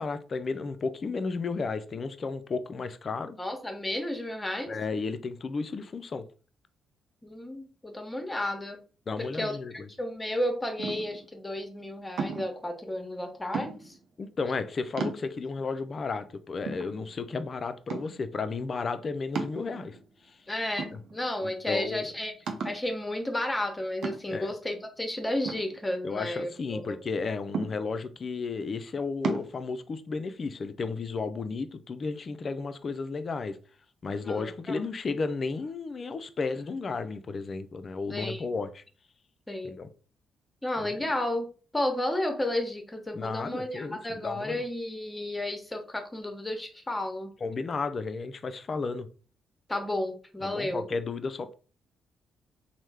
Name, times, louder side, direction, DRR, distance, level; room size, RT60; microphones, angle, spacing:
voice 1, 0.0-3.4 4.7-6.3 9.1-9.9 14.2-20.0 20.2-20.4 20.9-21.0 21.4-22.1 24.3-24.5 26.0-33.6 34.0-38.8 39.6-39.9 40.8-41.1 43.1-44.6 47.4-49.1 50.4-51.5, left 4 dB, 45° left, 0.3 m, -33 dB
voice 2, 3.4-4.7 7.2-8.8 9.2-9.6 10.0-14.0 20.5-22.3 22.6-27.0 34.2-34.7 38.1-38.5 39.5-39.7 40.6-41.5 41.7-47.3 49.7-50.8, left 1 dB, 15° left, 0.9 m, -32 dB
sound 1, 10.8-11.3 12.2-12.6 13.5-14.0 14.6-14.7 15.0-15.6 16.2-16.3 16.7-17.4 17.9-18.3 19.4-20.1 20.8-21.4 21.8-21.9 22.5-22.9 24.0-24.5 25.5-26.4 27.5-28.1 29.2-29.5, right 5 dB, 65° right, 0.5 m, -34 dB
3.1 x 2.1 x 3.3 m
hypercardioid pair, 45°, 0 cm